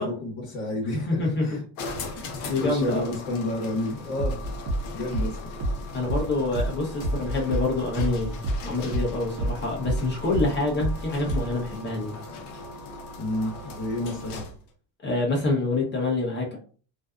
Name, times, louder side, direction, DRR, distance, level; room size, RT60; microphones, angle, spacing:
voice 1, 0.0-1.6 2.4-4.4 4.9-5.3 13.2-14.4, left 1 dB, 45° left, -3 dB, 1.2 m, -30 dB
voice 2, 0.9-1.5 2.0-3.1 5.9-8.4 8.6-12.1 15.0-16.6, left 2 dB, 20° left, -2 dB, 0.9 m, -27 dB
sound 1, 1.8-14.7, left 3 dB, 70° left, 0.7 m, -39 dB
sound 2, 4.2-9.1 9.4-11.6, right 1 dB, 30° right, 0.6 m, -28 dB
2.5 x 2.3 x 2.4 m, 0.41 s
cardioid pair, 145°, 49 cm